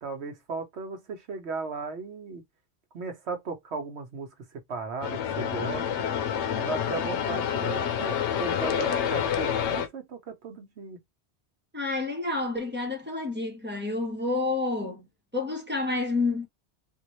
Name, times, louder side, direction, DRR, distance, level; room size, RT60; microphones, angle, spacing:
voice 1, 0.0-2.4 2.9-4.3 4.7-5.8 6.6-11.0, right 4 dB, 70° right, 1.1 m, -36 dB
sound 1, 5.0-9.9, left 8 dB, 90° left, 0.9 m, -28 dB
voice 2, 11.7-15.0 15.3-16.5, left 3 dB, 10° right, 1.0 m, -29 dB
3.6 x 2.4 x 3.0 m
omnidirectional pair, 1.1 m